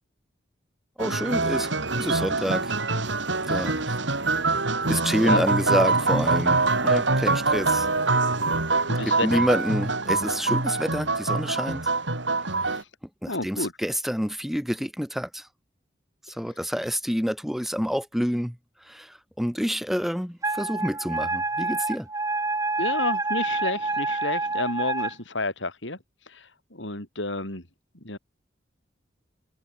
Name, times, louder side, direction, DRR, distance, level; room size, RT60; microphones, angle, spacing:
voice 1, 1.0-2.7 3.5-4.0 4.9-7.9 9.0-11.9 13.2-15.4 16.4-18.5 18.9-22.1, equal, ahead, 1.7 m, -28 dB
sound 1, 1.0-12.8, right 3 dB, 80° right, 4.1 m, -24 dB
voice 2, 8.8-9.5 12.7-12.9 13.3-13.7 16.5-16.7 22.8-26.0 26.2-27.6 28.0-28.2, left 2 dB, 80° left, 5.6 m, -31 dB
Wind instrument woodwind instrument, 20.4-25.1, right 3 dB, 20° right, 3.5 m, -27 dB
head